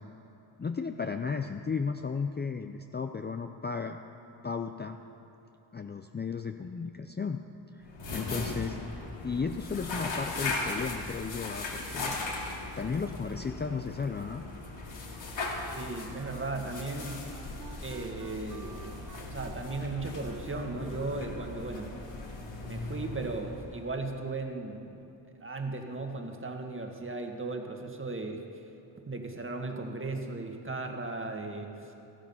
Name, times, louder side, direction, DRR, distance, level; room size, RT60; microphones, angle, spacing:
voice 1, 0.6-4.0 4.4-5.0 5.7-7.4 7.7-7.8 8.1-8.8 9.2-12.2 12.8-14.5, left 5 dB, 25° left, 6 dB, 0.5 m, -34 dB
sound 1, 7.8-24.0, left 2 dB, 75° left, 2.4 m, -38 dB
voice 2, 15.7-17.3 17.8-21.9 22.7-25.0 25.4-28.4 29.1-31.9, right 3 dB, 25° right, 3 dB, 1.7 m, -36 dB
Wind instrument woodwind instrument, 16.1-21.9, right 7 dB, 40° right, 0.8 m, -51 dB
13.5 x 12.0 x 5.6 m, 2.9 s
cardioid pair, 60°, 46 cm